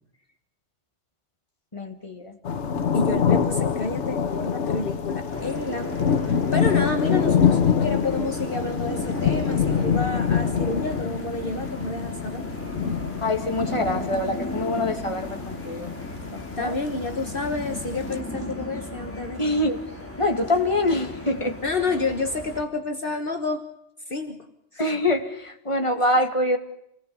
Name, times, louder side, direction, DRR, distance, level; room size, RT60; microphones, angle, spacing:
voice 1, 1.7-2.4 13.2-15.9 16.3-16.8 19.4-19.8 20.2-21.6 24.8-26.6, left 1 dB, 25° left, 5 dB, 2.3 m, -25 dB
sound 1, 2.5-18.2, left 7 dB, 80° left, 1.4 m, -26 dB
voice 2, 2.9-12.4 16.6-19.4 21.6-23.7 24.1-24.5 24.7-24.8, left 3 dB, 50° left, 5 dB, 1.7 m, -29 dB
sound 2, 5.3-22.6, left 1 dB, 10° left, 2.7 m, -35 dB
28.0 x 19.0 x 7.0 m, 0.77 s
omnidirectional pair, 1.2 m